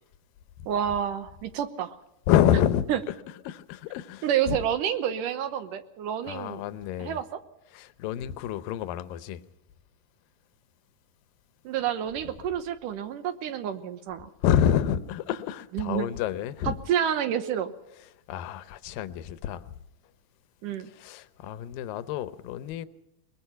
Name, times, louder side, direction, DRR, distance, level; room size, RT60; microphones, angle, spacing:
voice 1, 0.7-2.0 2.9-3.0 4.2-6.6 7.0-7.2 11.6-14.3 15.7-16.1 16.7-17.7 20.6-20.9, right 9 dB, 70° right, 2.4 m, -29 dB
voice 2, 2.3-2.9 3.5-4.6 6.3-7.2 7.7-9.4 14.4-16.8 18.3-19.6 20.8-22.9, left 10 dB, 80° left, 2.5 m, -28 dB
22.0 x 21.0 x 5.7 m
omnidirectional pair, 4.2 m